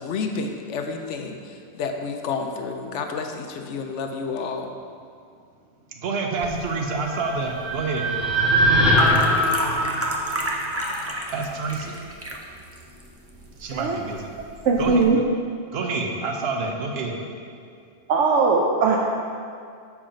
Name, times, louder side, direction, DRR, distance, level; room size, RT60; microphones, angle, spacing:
voice 1, 0.0-4.7, left 4 dB, 90° left, 4 dB, 1.0 m, -30 dB
voice 2, 5.9-8.1 11.3-12.0 13.6-14.3 14.8-15.0 15.7-17.2, right 3 dB, 60° right, 2 dB, 1.0 m, -28 dB
sound 1, 6.4-15.1, right 1 dB, 20° right, 0.4 m, -32 dB
sound 2, 7.1-11.3, equal, ahead, 1.1 m, -22 dB
voice 3, 14.6-15.2 18.1-19.0, right 4 dB, 85° right, -1 dB, 0.9 m, -19 dB
7.2 x 4.7 x 5.1 m, 2.3 s
omnidirectional pair, 1.2 m